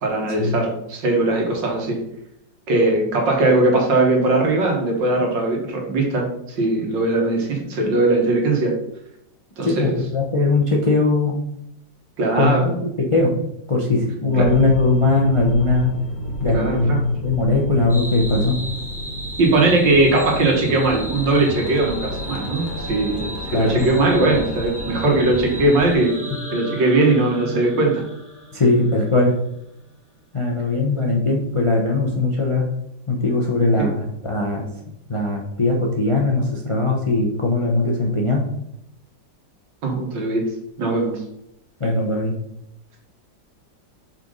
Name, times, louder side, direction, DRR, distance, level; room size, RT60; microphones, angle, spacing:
voice 1, 0.0-2.0 2.7-8.8 9.6-10.0 12.2-12.7 14.3-14.5 16.5-17.1 19.4-23.2 23.5-26.2 26.5-28.0 33.8-33.9 39.8-40.5 40.8-41.2, right 2 dB, 80° right, 1 dB, 2.2 m, -19 dB
voice 2, 9.6-11.4 12.4-13.3 13.7-15.9 16.4-18.5 23.5-23.8 28.5-29.3 30.3-32.6 33.1-34.6 35.1-38.4 41.8-42.3, left 2 dB, 30° left, 0 dB, 0.6 m, -20 dB
sound 1, 14.3-25.9, equal, 65° left, 2.1 m, -31 dB
sound 2, 17.9-26.8, right 1 dB, ahead, 1.5 m, -36 dB
sound 3, 25.8-29.9, right 2 dB, 25° right, 1.8 m, -36 dB
5.5 x 4.3 x 5.2 m, 0.79 s
omnidirectional pair, 1.9 m